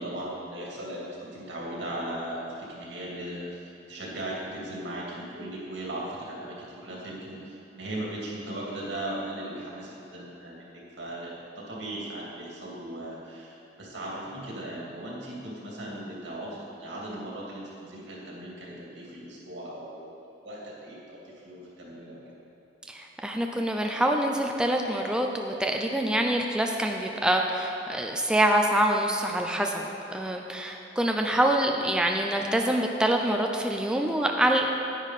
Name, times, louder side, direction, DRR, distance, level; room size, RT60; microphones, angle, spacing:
voice 1, 0.0-20.2 20.4-22.2, right 1 dB, 85° right, -4 dB, 2.6 m, -38 dB
voice 2, 22.9-29.9 30.1-34.7, right 1 dB, 5° right, 2 dB, 0.5 m, -25 dB
10.0 x 10.0 x 4.2 m, 3.0 s
head